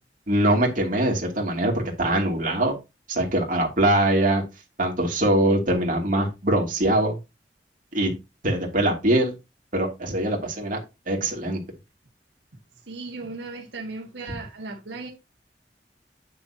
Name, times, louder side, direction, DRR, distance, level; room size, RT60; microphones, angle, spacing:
voice 1, 0.3-2.7 3.1-4.4 4.8-7.2 7.9-8.1 8.4-9.3 9.7-10.8 11.1-11.6, right 1 dB, 50° right, 2.6 m, -22 dB
voice 2, 12.9-15.1, right 3 dB, 85° right, 1.6 m, -36 dB
8.8 x 6.5 x 2.8 m
head